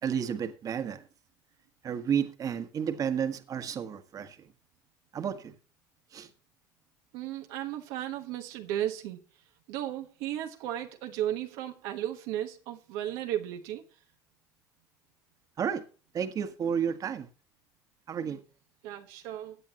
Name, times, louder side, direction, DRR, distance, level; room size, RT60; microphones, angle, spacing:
voice 1, 0.0-1.1 1.8-4.5 5.1-5.6 6.1-6.3 15.6-15.8 16.1-17.3 18.1-18.4, right 8 dB, 45° right, 1.6 m, -31 dB
voice 2, 7.1-9.2 9.7-13.8 18.8-19.6, right 12 dB, 85° right, 1.3 m, -35 dB
16.5 x 8.9 x 3.0 m
supercardioid pair, 100°, 8 cm